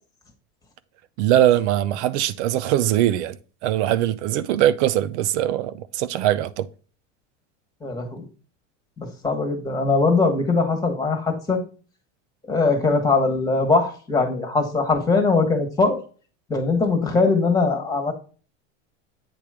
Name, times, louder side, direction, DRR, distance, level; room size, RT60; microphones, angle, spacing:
voice 1, 1.2-3.4 3.6-6.7, right 12 dB, 70° right, 0.7 m, -21 dB
voice 2, 7.8-8.3 9.0-11.6 12.5-16.0 16.5-18.1, left 3 dB, 10° left, 1.6 m, -21 dB
8.8 x 3.1 x 5.0 m
supercardioid pair, 130°, 36 cm